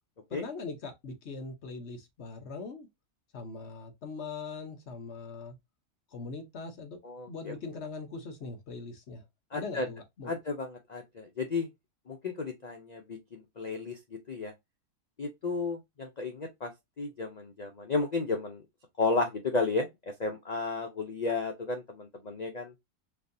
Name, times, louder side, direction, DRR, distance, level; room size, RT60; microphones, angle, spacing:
voice 1, 0.3-2.9 3.3-5.6 6.1-7.0 7.3-9.2 9.5-10.4, left 4 dB, 50° left, 1.0 m, -41 dB
voice 2, 7.0-7.6 9.5-9.9 10.3-11.7 12.1-14.0 14.3-14.5 15.2-16.7 17.0-18.6 19.0-19.9 20.2-22.7, left 3 dB, 90° left, 0.3 m, -33 dB
4.4 x 2.7 x 2.6 m
omnidirectional pair, 1.6 m